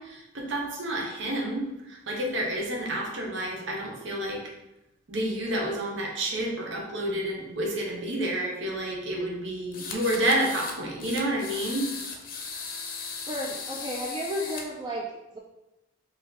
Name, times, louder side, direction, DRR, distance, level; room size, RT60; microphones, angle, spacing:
voice 1, 0.0-4.4 5.1-11.9, right 1 dB, 75° right, -1 dB, 0.9 m, -29 dB
sound 1, 9.7-10.8 11.0-14.6, left 5 dB, 45° left, 0.6 m, -37 dB
voice 2, 12.3-12.7 13.2-15.4, equal, 20° right, -1 dB, 0.3 m, -34 dB
4.6 x 2.6 x 3.9 m, 0.97 s
head